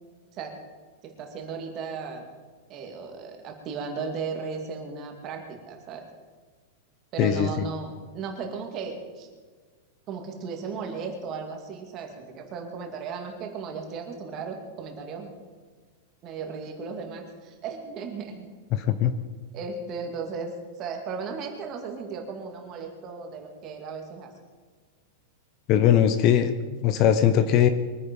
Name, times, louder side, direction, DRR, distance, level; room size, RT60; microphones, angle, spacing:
voice 1, 1.0-2.2 2.7-6.1 7.1-9.3 10.1-15.4 16.2-18.5 19.5-24.3, right 5 dB, 30° right, 3 dB, 2.6 m, -36 dB
voice 2, 18.7-19.1 25.7-27.7, left 9 dB, 35° left, 11 dB, 0.8 m, -20 dB
23.0 x 9.8 x 5.5 m, 1.5 s
supercardioid pair, 165°, 0 cm